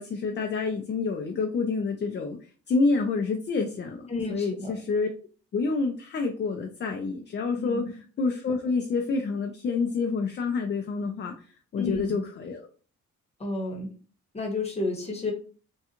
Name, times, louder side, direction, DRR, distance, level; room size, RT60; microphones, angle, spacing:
voice 1, 0.0-2.4 2.7-5.1 5.5-11.3 11.7-12.7, left 4 dB, 35° left, 4 dB, 0.5 m, -28 dB
voice 2, 4.1-4.7 7.6-7.9 11.8-12.2 13.4-13.9 14.3-15.3, left 2 dB, 20° left, 2 dB, 1.1 m, -31 dB
3.6 x 2.3 x 2.8 m, 0.39 s
cardioid pair, 90°, 30 cm